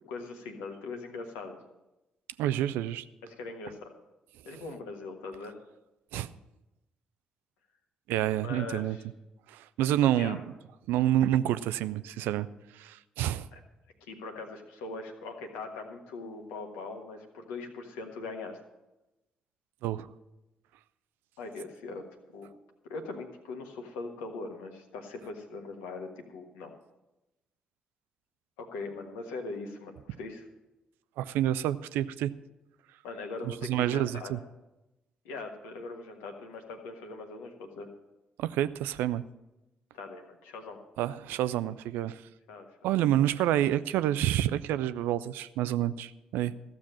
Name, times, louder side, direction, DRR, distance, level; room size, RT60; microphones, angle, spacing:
voice 1, 0.1-1.6 3.2-3.9 4.5-5.5 8.4-9.0 10.0-10.4 11.0-11.1 13.5-13.6 14.1-18.6 21.4-22.0 22.3-22.5 22.9-26.7 28.6-30.5 33.0-34.3 35.2-37.9 39.9-40.8 42.5-42.7, left 3 dB, 70° left, 4 dB, 1.4 m, -41 dB
voice 2, 2.4-3.0 4.5-4.6 6.1-6.3 8.1-9.0 9.5-10.4 10.9-12.5 12.8-13.5 19.8-20.1 31.2-32.3 33.5-34.4 38.4-39.2 41.0-42.2 42.8-46.5, right 12 dB, 65° right, 15 dB, 0.4 m, -28 dB
14.5 x 7.2 x 7.5 m, 0.97 s
figure-of-eight pair, 40°, 4 cm